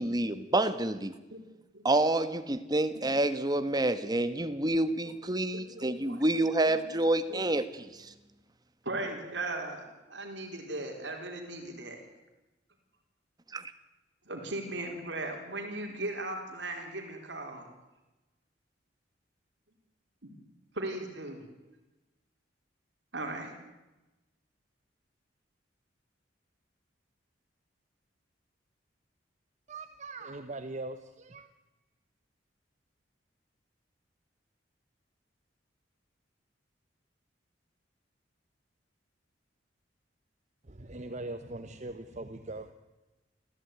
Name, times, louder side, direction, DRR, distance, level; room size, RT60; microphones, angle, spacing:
voice 1, 0.0-1.1 1.8-8.1 13.5-13.6, right 1 dB, 20° right, 11 dB, 1.4 m, -28 dB
voice 2, 5.5-6.2 6.7-6.8 7.3-7.4 8.8-12.0 14.3-17.7 20.2-20.3 20.7-21.4 23.1-23.5, right 2 dB, 70° right, 3 dB, 4.3 m, -38 dB
voice 3, 29.7-31.5 40.6-42.7, right 2 dB, 40° right, 8 dB, 1.2 m, -41 dB
27.0 x 15.0 x 9.5 m, 1.1 s
head